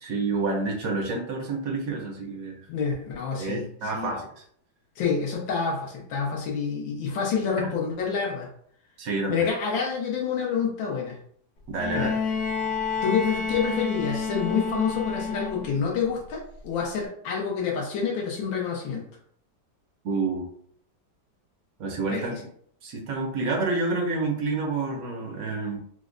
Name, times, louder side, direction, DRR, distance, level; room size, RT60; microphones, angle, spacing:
voice 1, 0.0-2.6 3.4-4.3 9.0-9.5 11.7-12.1 20.0-20.5 21.8-22.3 22.8-25.8, right 3 dB, 70° right, 1 dB, 0.9 m, -28 dB
voice 2, 2.7-3.6 3.9-4.1 5.0-8.5 9.3-11.2 11.9-12.1 13.0-19.0 22.1-22.4, left 6 dB, 85° left, -2 dB, 1.5 m, -28 dB
Bowed string instrument, 11.8-15.8 17.1-17.2, left 5 dB, 70° left, 1.3 m, -29 dB
4.5 x 2.0 x 2.5 m, 0.63 s
omnidirectional pair, 2.1 m